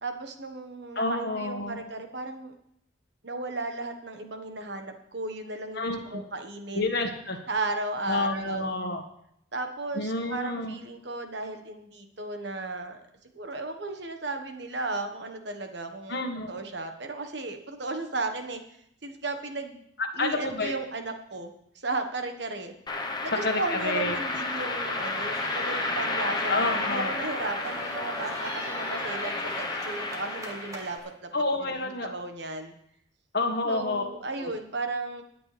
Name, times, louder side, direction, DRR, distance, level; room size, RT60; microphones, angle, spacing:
voice 1, 0.0-2.5 3.2-6.9 7.5-8.7 9.5-13.0 13.3-18.6 19.0-19.8 20.1-21.5 21.8-22.7 23.2-31.3 31.6-32.7 33.6-35.2, right 2 dB, 60° right, 6 dB, 1.4 m, -35 dB
voice 2, 0.9-1.8 5.7-6.3 6.7-7.4 8.1-9.0 9.9-10.8 16.1-16.5 20.2-20.8 23.4-24.2 26.5-27.1 31.3-32.2 33.3-34.0 34.4-34.5, left 2 dB, 55° left, 3 dB, 1.6 m, -29 dB
sound 1, 22.9-31.0, left 3 dB, 20° left, 1.0 m, -32 dB
sound 2, 23.8-31.1, right 1 dB, 15° right, 1.6 m, -41 dB
21.5 x 8.6 x 3.4 m, 0.73 s
head